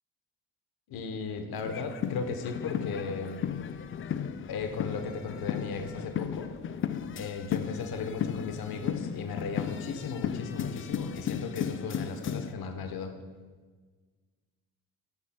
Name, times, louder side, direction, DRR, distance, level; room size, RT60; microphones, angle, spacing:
voice 1, 0.9-3.4 4.5-6.5 7.1-13.2, left 5 dB, 60° left, 6 dB, 1.0 m, -36 dB
sound 1, 1.5-12.5, left 8 dB, 30° left, 0.4 m, -35 dB
sound 2, 3.5-11.6, equal, 5° left, 1.2 m, -55 dB
13.5 x 5.9 x 2.2 m, 1.4 s
supercardioid pair, 65°, 42 cm